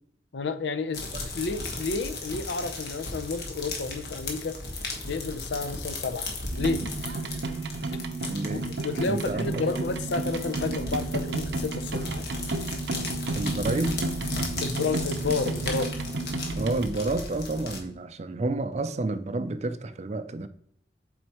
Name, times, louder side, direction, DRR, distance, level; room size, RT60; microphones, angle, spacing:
voice 1, 0.3-1.1 1.3-4.6 5.1-6.3 6.6-6.8 8.5-12.3 14.6-15.9, left 3 dB, 85° left, 0.6 m, -31 dB
sound 1, 0.9-17.8, left 2 dB, 60° left, 1.3 m, -36 dB
sound 2, 6.5-16.9, right 3 dB, 75° right, 0.7 m, -32 dB
voice 2, 8.3-8.6 9.1-9.7 13.3-14.0 16.6-20.5, right 2 dB, 40° right, 0.4 m, -30 dB
7.8 x 4.3 x 3.0 m
head